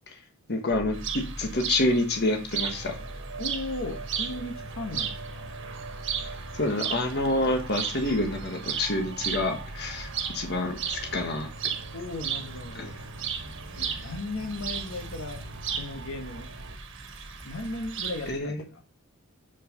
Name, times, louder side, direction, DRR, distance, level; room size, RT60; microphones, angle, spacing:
voice 1, 0.5-2.9 6.6-11.5 12.7-12.9 18.3-18.6, left 1 dB, 45° left, 4 dB, 1.5 m, -28 dB
sound 1, 0.7-18.4, equal, ahead, 1.0 m, -44 dB
sound 2, 0.9-18.3, right 8 dB, 55° right, 1.4 m, -36 dB
sound 3, 2.6-16.8, right 2 dB, 90° right, 1.0 m, -44 dB
voice 2, 3.4-5.5 11.9-13.0 13.8-15.4 15.7-16.5 17.4-18.8, left 2 dB, 65° left, 4 dB, 1.4 m, -36 dB
7.3 x 5.8 x 5.2 m, 0.32 s
head